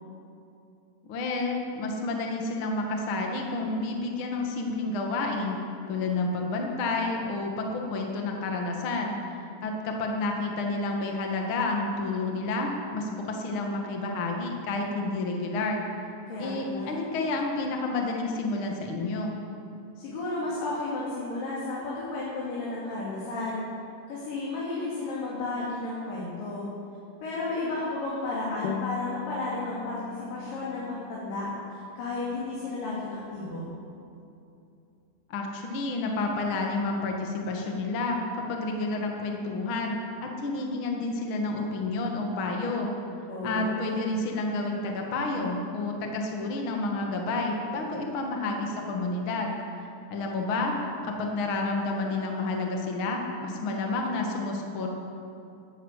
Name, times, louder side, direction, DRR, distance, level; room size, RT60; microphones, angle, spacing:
voice 1, 1.0-5.6 5.9-15.8 16.4-19.4 35.3-38.2 38.5-42.9 43.4-55.0, left 2 dB, 45° left, 1 dB, 2.0 m, -30 dB
voice 2, 16.3-17.0 20.0-23.6 24.1-26.7 27.2-33.7 43.3-44.0, left 2 dB, 65° left, -7 dB, 4.3 m, -33 dB
sound 1, 28.6-33.6, left 11 dB, 85° left, 2.5 m, -41 dB
13.0 x 12.5 x 8.2 m, 2.7 s
omnidirectional pair, 4.2 m